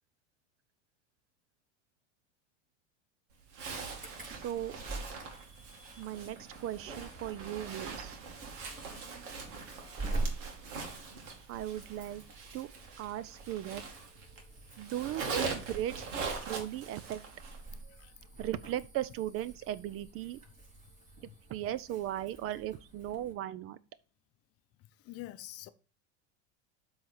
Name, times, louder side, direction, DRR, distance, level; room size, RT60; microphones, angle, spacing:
Zipper (clothing), 3.5-14.4 14.7-17.7, right 4 dB, 70° right, 2.3 m, -42 dB
Insect / Alarm, 3.9-23.3, right 2 dB, 20° right, 4.4 m, -45 dB
voice 1, 4.2-4.7 6.0-8.2 11.5-12.2 12.5-12.7 13.0-14.1 14.8-16.0 16.4-17.2 18.4-20.4 21.5-23.8, right 12 dB, 40° right, 0.5 m, -37 dB
voice 2, 17.9-18.2 20.8-20.9 21.2-21.4 24.8-25.7, left 16 dB, 40° left, 0.7 m, -47 dB
7.6 x 4.1 x 5.9 m
supercardioid pair, 105°, 36 cm